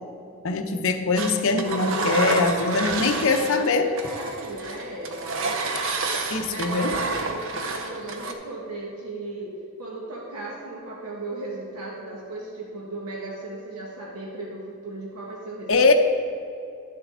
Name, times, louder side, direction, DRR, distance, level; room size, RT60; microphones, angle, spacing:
voice 1, 0.4-3.9 6.3-6.9 15.7-15.9, left 3 dB, 60° left, 5 dB, 0.7 m, -22 dB
Engine, 1.2-3.7 4.0-8.3, right 3 dB, 60° right, 0.7 m, -29 dB
voice 2, 2.6-5.2 6.5-15.9, right 2 dB, 80° right, -3 dB, 1.1 m, -36 dB
11.5 x 6.7 x 3.7 m, 2.5 s
head